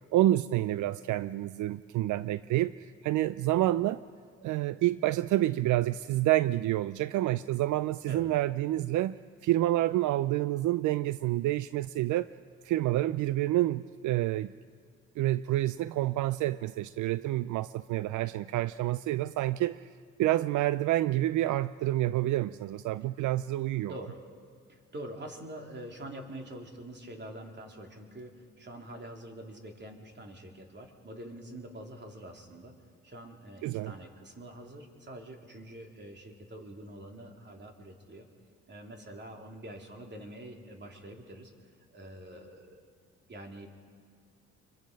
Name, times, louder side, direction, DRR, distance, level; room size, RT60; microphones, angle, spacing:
voice 1, 0.1-4.0 4.4-9.2 9.4-12.3 12.6-14.5 15.2-19.9 20.2-23.9 33.6-33.9, right 15 dB, 80° right, 15 dB, 0.5 m, -28 dB
voice 2, 23.9-24.2 24.7-32.7 33.0-38.2 38.7-41.5 41.9-42.8 43.3-43.7, right 1 dB, 35° right, 2 dB, 3.1 m, -45 dB
27.0 x 23.0 x 5.3 m, 2.1 s
cardioid pair, 90°, 30 cm